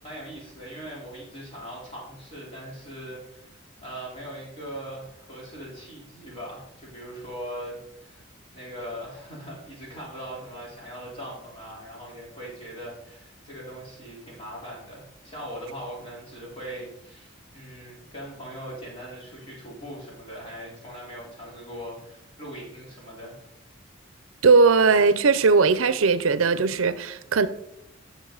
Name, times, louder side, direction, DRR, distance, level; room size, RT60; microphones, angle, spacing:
voice 1, 0.0-8.3 8.5-23.5, equal, 25° left, 3.8 m, -40 dB
voice 2, 24.4-27.5, right 4 dB, 85° right, 0.6 m, -19 dB
10.5 x 7.0 x 3.9 m
head